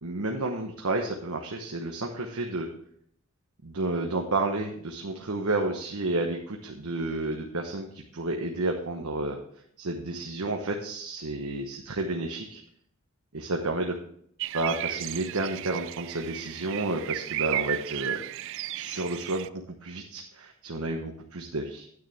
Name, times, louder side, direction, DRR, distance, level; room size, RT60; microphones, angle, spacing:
voice 1, 0.0-2.7 3.6-9.4 9.8-12.6 13.3-14.0 14.5-18.2 18.7-21.9, right 2 dB, 80° right, 1 dB, 1.1 m, -31 dB
sound 1, 14.4-19.5, right 13 dB, 60° right, 0.3 m, -34 dB
9.5 x 9.4 x 3.5 m, 0.66 s
head